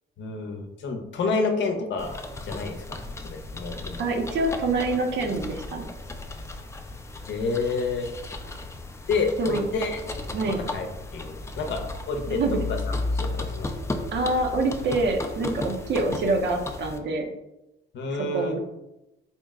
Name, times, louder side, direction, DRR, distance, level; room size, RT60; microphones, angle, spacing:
voice 1, 0.2-2.2 2.4-4.0 7.3-8.1 9.1-10.0 10.4-10.9 11.1-12.4 12.7-12.8 13.1-13.7 17.9-18.6, left 4 dB, 65° left, 4 dB, 0.7 m, -29 dB
sound 1, 2.0-17.0, left 2 dB, 15° left, 0.4 m, -35 dB
voice 2, 4.0-5.9 9.4-9.6 10.3-10.6 12.3-12.6 14.1-17.3 18.1-18.6, right 2 dB, 65° right, 4 dB, 0.7 m, -26 dB
4.4 x 2.1 x 3.5 m, 0.92 s
cardioid pair, 90°, 20 cm